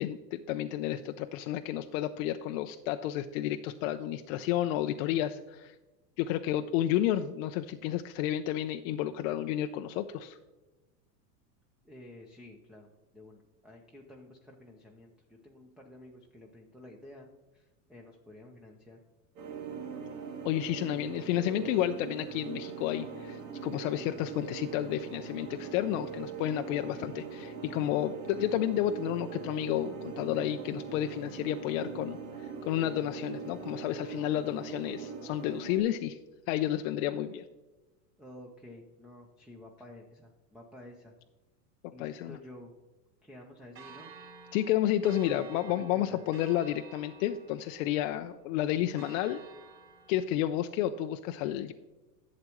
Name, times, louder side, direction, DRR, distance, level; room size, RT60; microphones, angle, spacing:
voice 1, 0.0-5.8 6.2-10.4 20.4-36.2 36.5-37.4 41.8-42.4 44.5-49.4 50.1-51.7, left 12 dB, 55° left, 7 dB, 0.5 m, -31 dB
voice 2, 11.8-17.3 17.5-19.0 26.7-27.2 38.2-41.1 41.9-42.7 43.2-44.1 45.5-46.2, left 1 dB, ahead, 1 dB, 0.7 m, -51 dB
sound 1, 19.4-35.8, right 6 dB, 80° right, 2.0 m, -41 dB
Church bell, 43.7-50.2, right 5 dB, 35° right, 2.8 m, -52 dB
11.5 x 7.7 x 3.0 m, 1.1 s
supercardioid pair, 120°, 49 cm